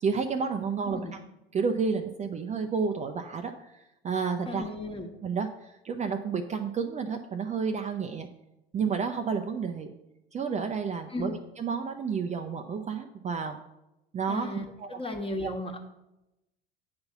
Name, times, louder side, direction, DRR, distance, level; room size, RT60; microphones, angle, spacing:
voice 1, 0.0-1.2 1.5-4.7 5.2-8.3 8.7-9.9 10.3-13.6 14.1-14.5 14.8-15.0 15.4-15.5, right 5 dB, 25° right, 5 dB, 0.6 m, -31 dB
voice 2, 4.5-5.1 11.1-11.4 14.3-15.8, left 1 dB, 20° left, 3 dB, 1.4 m, -35 dB
8.6 x 4.0 x 5.8 m, 0.93 s
hypercardioid pair, 75°, 30 cm